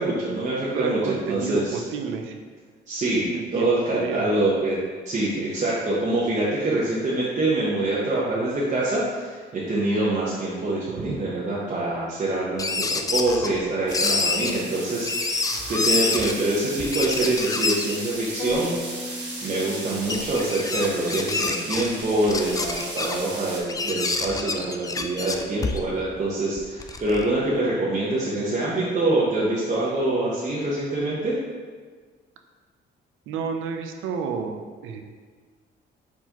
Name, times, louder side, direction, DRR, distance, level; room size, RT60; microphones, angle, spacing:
voice 1, 0.0-1.8 2.9-3.3 3.5-4.8 5.0-19.1 19.4-31.3, right 2 dB, 35° right, -7 dB, 0.9 m, -25 dB
voice 2, 0.7-2.4 3.3-3.7 3.9-4.3 33.3-35.0, right 6 dB, 90° right, 4 dB, 0.5 m, -31 dB
sound 1, 12.6-13.6 13.9-14.5 15.1-16.3 16.8-18.0 18.5-18.6 19.3-19.4 20.1-21.9 22.3-23.1 23.7-26.0 26.6-27.4, left 3 dB, 20° left, 0.3 m, -27 dB
sound 2, 13.9-23.6, right 2 dB, 65° right, 1.2 m, -36 dB
sound 3, 18.4-20.4, left 2 dB, 85° left, 0.8 m, -37 dB
4.5 x 4.0 x 2.9 m, 1.5 s
cardioid pair, 90°, 20 cm